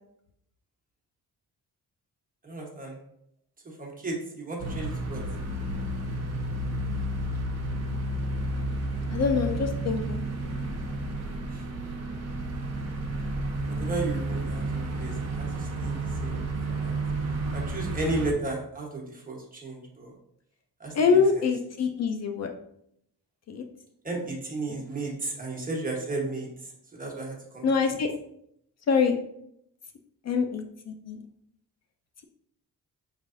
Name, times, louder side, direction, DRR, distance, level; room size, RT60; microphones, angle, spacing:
voice 1, 2.4-3.0 3.6-5.2 11.5-11.6 13.7-16.9 17.5-20.1 20.8-21.5 24.0-28.0, right 2 dB, 25° right, -2 dB, 1.1 m, -34 dB
sound 1, 4.6-18.3, right 2 dB, 50° right, 0.8 m, -31 dB
voice 2, 9.1-10.2 21.0-22.5 23.5-23.6 27.6-28.1 28.9-29.2 30.3-31.2, left 5 dB, 50° left, 5 dB, 0.4 m, -25 dB
5.3 x 3.2 x 2.6 m, 0.73 s
wide cardioid pair, 125°, 34 cm